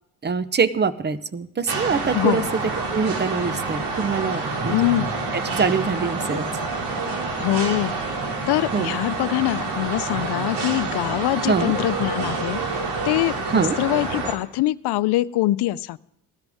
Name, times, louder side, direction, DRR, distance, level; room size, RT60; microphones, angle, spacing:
voice 1, 0.2-4.8 5.3-6.5 8.7-8.9 11.5-11.7 13.5-13.8, right 5 dB, 25° right, 14 dB, 0.9 m, -24 dB
sound 1, 1.7-14.3, right 3 dB, 70° right, 2.9 m, -27 dB
voice 2, 2.1-2.5 4.7-5.1 7.4-8.0 8.5-16.0, left 15 dB, 65° left, 17 dB, 0.7 m, -24 dB
18.5 x 13.0 x 3.6 m, 0.74 s
supercardioid pair, 80°, 42 cm